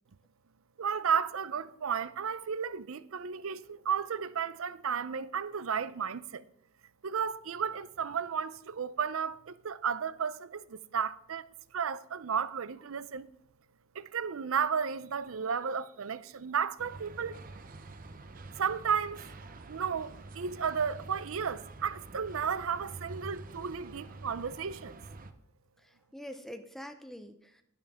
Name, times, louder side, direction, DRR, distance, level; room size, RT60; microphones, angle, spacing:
voice 1, 0.8-6.4 7.0-11.4 11.7-13.3 14.0-17.4 18.6-19.2 19.7-25.0, right 7 dB, 75° right, 0.5 m, -33 dB
sound 1, 16.8-25.3, right 3 dB, 40° right, 0.7 m, -47 dB
voice 2, 25.8-27.6, equal, ahead, 0.6 m, -45 dB
12.0 x 10.5 x 3.6 m
head